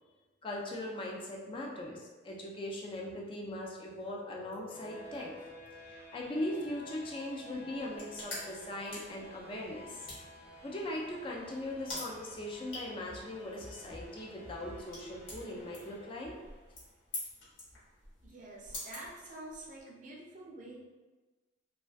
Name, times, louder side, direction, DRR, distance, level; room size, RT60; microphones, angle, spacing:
voice 1, 0.4-5.3 5.7-10.2 10.6-16.3, left 1 dB, 25° left, -2 dB, 0.3 m, -40 dB
sound 1, 4.0-17.0, left 1 dB, 65° left, 0.8 m, -53 dB
sound 2, 7.7-19.8, left 2 dB, 85° left, 1.0 m, -48 dB
voice 2, 18.2-20.8, right 1 dB, 40° right, -3 dB, 0.5 m, -47 dB
2.3 x 2.2 x 2.4 m, 1.2 s
head